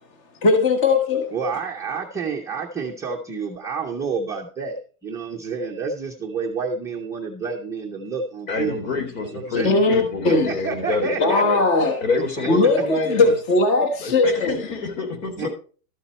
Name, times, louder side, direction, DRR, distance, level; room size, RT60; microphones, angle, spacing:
voice 1, 0.4-1.3 9.5-10.6 11.2-12.0 12.5-14.7, left 3 dB, 30° left, 1.4 m, -19 dB
voice 2, 1.3-9.7 10.2-11.4 12.4-12.7 15.4-15.5, right 5 dB, 5° right, 0.5 m, -29 dB
voice 3, 8.5-11.6 12.0-13.3 14.0-15.5, left 4 dB, 65° left, 3.8 m, -27 dB
13.0 x 7.0 x 4.3 m
supercardioid pair, 170°, 44 cm